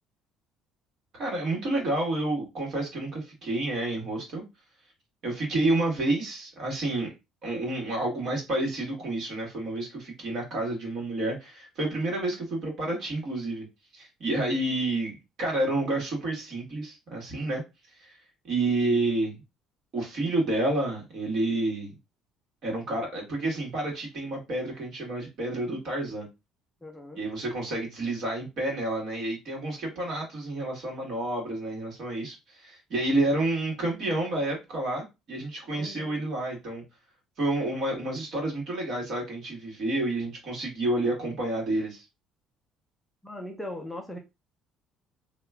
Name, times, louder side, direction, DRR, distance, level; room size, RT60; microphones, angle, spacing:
voice 1, 1.1-4.4 5.2-7.1 7.4-13.7 13.9-17.6 18.0-18.1 18.4-19.4 19.9-21.9 22.6-26.3 27.1-36.8 37.4-42.0, right 2 dB, 50° right, 1.7 m, -29 dB
voice 2, 26.8-27.2 35.7-36.2 43.2-44.2, left 1 dB, 5° left, 0.5 m, -39 dB
2.9 x 2.3 x 3.4 m
cardioid pair, 145°, 0 cm